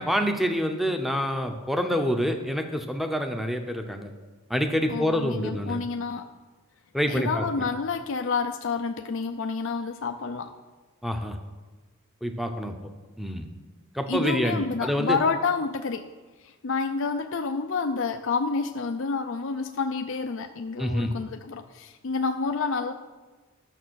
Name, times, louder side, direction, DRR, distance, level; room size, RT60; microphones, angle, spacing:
voice 1, 0.0-4.1 4.5-5.8 6.9-7.4 11.0-11.4 12.2-12.7 13.2-13.5 13.9-15.2 20.8-21.1, equal, ahead, 5 dB, 0.7 m, -27 dB
voice 2, 4.9-6.2 7.1-10.5 14.1-16.1 16.4-22.9, left 4 dB, 60° left, 6 dB, 0.5 m, -29 dB
11.5 x 6.8 x 6.3 m, 1.3 s
head